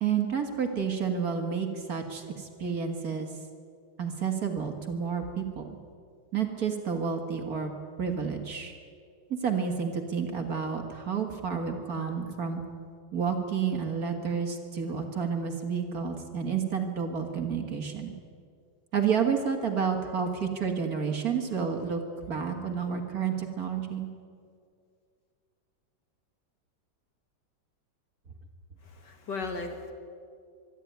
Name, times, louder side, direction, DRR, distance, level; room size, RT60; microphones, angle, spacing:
voice 1, 0.0-3.3 4.0-5.8 6.3-7.7 8.0-8.7 9.3-12.6 13.1-18.1 18.9-24.1, right 6 dB, 45° right, 4 dB, 2.0 m, -30 dB
voice 2, 28.8-29.9, left 3 dB, 55° left, 5 dB, 2.3 m, -36 dB
24.0 x 12.0 x 9.4 m, 2.3 s
omnidirectional pair, 2.2 m